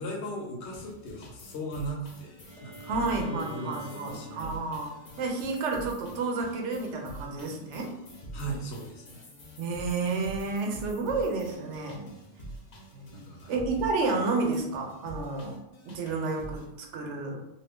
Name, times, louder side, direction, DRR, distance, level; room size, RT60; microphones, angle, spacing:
voice 1, 0.0-2.9 3.3-4.8 8.3-9.2 13.1-13.6, right 1 dB, 75° left, 0 dB, 1.0 m, -38 dB
sound 1, 0.6-16.7, right 1 dB, 45° left, 0.7 m, -46 dB
Bowed string instrument, 2.4-6.2, right 1 dB, 35° right, 0.6 m, -49 dB
voice 2, 2.9-7.9 9.6-12.1 12.9-13.2 13.5-15.6 15.8-17.4, right 3 dB, 90° right, 2 dB, 0.9 m, -31 dB
2.7 x 2.4 x 3.3 m, 0.86 s
omnidirectional pair, 1.2 m